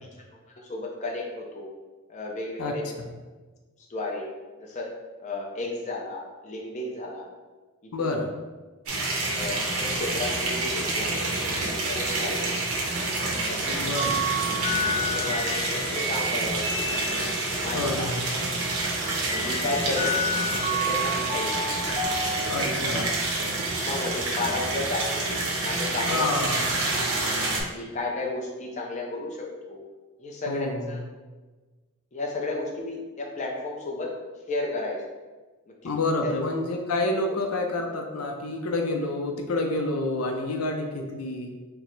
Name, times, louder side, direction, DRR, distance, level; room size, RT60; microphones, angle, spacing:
voice 1, 0.6-1.7 2.1-2.8 3.9-4.3 4.6-4.9 5.2-7.3 7.8-8.2 9.3-12.6 13.5-13.8 15.0-16.9 17.5-17.9 19.3-20.1 20.7-21.8 22.5-22.7 23.9-25.2 25.6-26.3 27.7-29.8 30.2-31.0 32.1-34.1 34.5-35.0 35.7-36.5, left 2 dB, 35° left, -1 dB, 0.5 m, -33 dB
voice 2, 2.6-3.1 7.9-8.3 13.8-14.2 17.7-18.2 22.5-23.1 26.1-26.8 30.5-31.0 35.8-41.5, left 2 dB, 80° left, 3 dB, 0.5 m, -28 dB
sound 1, 8.9-27.6, right 2 dB, 80° right, 0.8 m, -28 dB
sound 2, 14.0-17.7 19.3-23.1, equal, 25° right, 0.3 m, -30 dB
4.5 x 2.1 x 3.9 m, 1.3 s
head